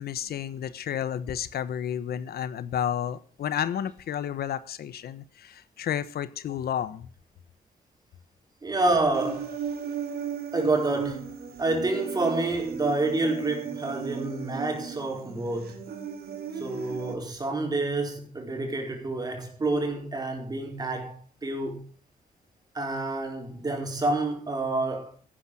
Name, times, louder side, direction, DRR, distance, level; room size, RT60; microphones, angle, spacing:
voice 1, 0.0-7.1, left 9 dB, 90° left, 1.2 m, -31 dB
voice 2, 8.6-9.5 10.5-11.3 11.6-15.8 16.6-21.9 22.7-25.1, right 2 dB, 25° right, 4.7 m, -28 dB
Human voice, 9.1-17.1, right 7 dB, 85° right, 3.3 m, -36 dB
15.0 x 11.5 x 6.4 m
wide cardioid pair, 140°, 16 cm